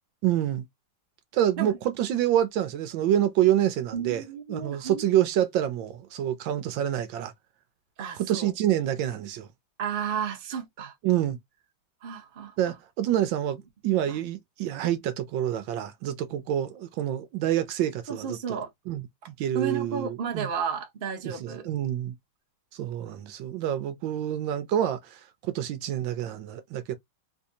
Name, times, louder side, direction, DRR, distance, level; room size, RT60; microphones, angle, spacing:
voice 1, 0.2-0.6 1.3-4.2 4.5-7.3 8.2-9.5 11.0-11.4 12.6-18.6 18.9-19.0 19.4-20.5 21.2-22.1 22.7-26.9, right 11 dB, 75° right, 1.2 m, -27 dB
voice 2, 3.9-5.1 8.0-8.5 9.8-10.9 12.0-12.5 14.1-14.2 18.1-18.7 19.5-21.7, right 6 dB, 50° right, 0.6 m, -33 dB
3.9 x 2.7 x 2.6 m
omnidirectional pair, 2.2 m